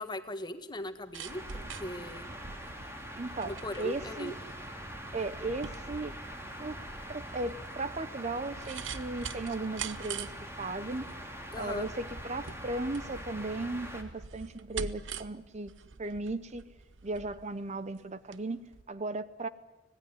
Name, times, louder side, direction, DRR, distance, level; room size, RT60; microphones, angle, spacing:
voice 1, 0.0-2.3 3.4-4.4 11.5-11.9, left 1 dB, 25° left, 9 dB, 1.6 m, -39 dB
sound 1, 0.8-18.4 18.7-18.8, right 6 dB, 85° right, 1.0 m, -45 dB
sound 2, 1.2-14.0, equal, 15° right, 3.0 m, -43 dB
voice 2, 3.2-4.3 5.1-6.1 6.6-6.8 7.1-11.0 11.5-15.7 16.0-16.7 17.0-18.6 18.9-19.5, right 2 dB, 35° right, 14 dB, 0.8 m, -36 dB
25.5 x 18.5 x 9.7 m, 1.0 s
head